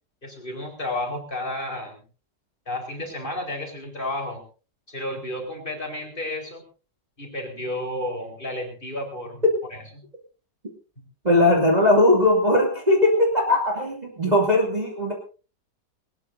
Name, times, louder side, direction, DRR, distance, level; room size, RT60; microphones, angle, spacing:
voice 1, 0.2-2.0 2.7-4.4 4.9-6.6 7.2-9.4 9.7-9.8 11.0-11.1, left 1 dB, 30° left, 2 dB, 4.7 m, -32 dB
voice 2, 11.2-15.1, left 1 dB, 25° right, -1 dB, 2.6 m, -19 dB
20.5 x 19.5 x 2.7 m, 0.36 s
omnidirectional pair, 1.8 m